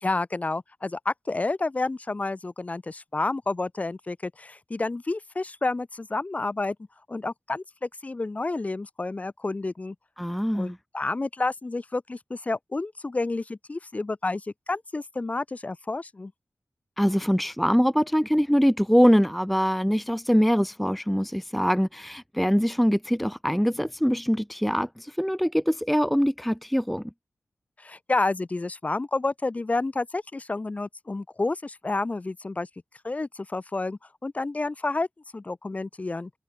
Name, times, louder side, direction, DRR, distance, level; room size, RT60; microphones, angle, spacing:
voice 1, 0.0-6.8 7.1-9.9 10.5-16.3 27.8-32.7 33.0-35.1 35.3-36.3, left 3 dB, 30° left, 1.0 m, -30 dB
voice 2, 10.2-10.8 17.0-27.1, equal, ahead, 0.4 m, -23 dB
wide cardioid pair, 110°, 5 cm